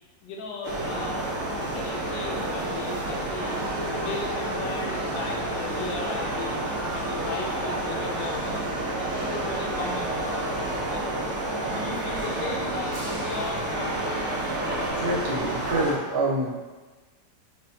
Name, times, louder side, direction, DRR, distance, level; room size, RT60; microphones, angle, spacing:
voice 1, 0.2-3.6 3.9-6.6 6.9-10.6 10.9-11.1 11.4-14.2, left 3 dB, 90° left, 0 dB, 1.3 m, -37 dB
sound 1, 0.6-15.9, right 1 dB, 60° right, 1.0 m, -29 dB
voice 2, 14.9-16.5, right 2 dB, 80° right, -4 dB, 1.4 m, -27 dB
5.2 x 2.2 x 2.7 m, 1.3 s
omnidirectional pair, 1.9 m